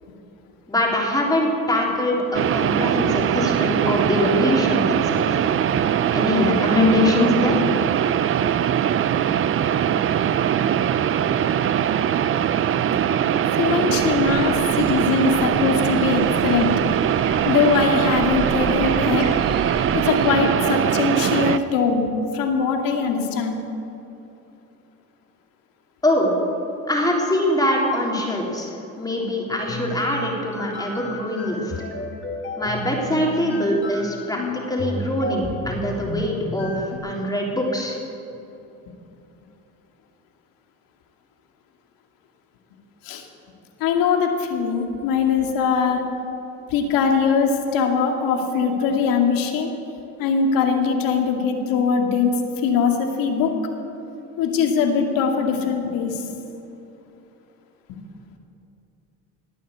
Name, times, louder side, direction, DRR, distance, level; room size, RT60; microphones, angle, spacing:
voice 1, 0.7-5.4 6.1-7.6 26.0-26.3 26.9-31.7 32.6-38.0, left 1 dB, 10° left, -2 dB, 3.4 m, -23 dB
sound 1, 2.3-21.6, right 9 dB, 40° right, 0.6 m, -21 dB
voice 2, 13.6-16.7 17.5-19.3 19.9-22.1 22.3-23.6 43.0-43.2 43.8-46.0 46.7-49.7 50.2-53.5 54.4-56.2 57.9-58.0, left 6 dB, 80° left, 3 dB, 2.4 m, -21 dB
sound 2, 13.9-20.2, right 3 dB, 65° right, 3.7 m, -36 dB
sound 3, 29.5-37.0, left 2 dB, 35° left, 2.6 m, -33 dB
19.0 x 9.4 x 8.2 m, 2.9 s
cardioid pair, 110°, 34 cm